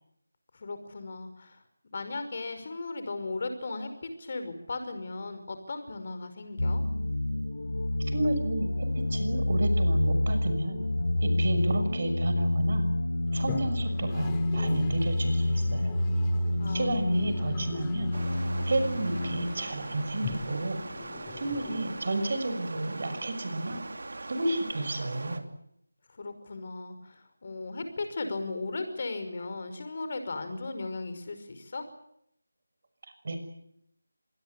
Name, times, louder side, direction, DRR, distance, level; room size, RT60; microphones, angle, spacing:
voice 1, 0.5-1.6 1.9-6.8 16.6-17.6 26.1-31.8, left 3 dB, 40° left, 8 dB, 5.4 m, -37 dB
sound 1, 6.6-19.5, left 1 dB, 80° left, 2.1 m, -28 dB
voice 2, 8.1-10.8 11.2-12.8 13.3-15.9 16.7-18.1 18.7-20.8 21.4-23.8 24.3-25.4 33.2-33.4, right 2 dB, 50° right, 8 dB, 6.3 m, -31 dB
Toilet flush, 13.3-22.4, left 8 dB, 15° left, 1.5 m, -43 dB
Stream, 18.1-25.4, right 2 dB, 65° right, 3.0 m, -41 dB
26.0 x 20.5 x 8.6 m, 0.75 s
figure-of-eight pair, 165°, 0 cm